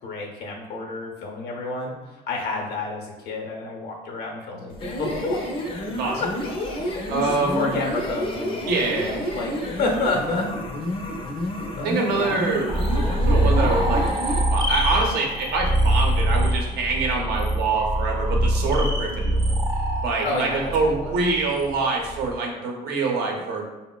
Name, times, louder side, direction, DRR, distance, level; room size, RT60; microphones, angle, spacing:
voice 1, 0.0-5.4 6.2-6.3 6.7-10.5 10.8-10.9 11.8-12.4 20.2-21.1, left 3 dB, 75° left, 0 dB, 0.7 m, -30 dB
sound 1, 4.7-14.5, left 1 dB, 30° left, 0.5 m, -30 dB
voice 2, 7.1-7.8 8.7-9.4 11.8-12.7 12.9-14.2 14.5-19.5 20.0-23.6, right 3 dB, 75° right, 0 dB, 0.6 m, -25 dB
sound 2, 12.7-22.3, right 1 dB, 25° right, 0.4 m, -23 dB
3.6 x 2.0 x 2.2 m, 1.1 s
cardioid pair, 110°, 17 cm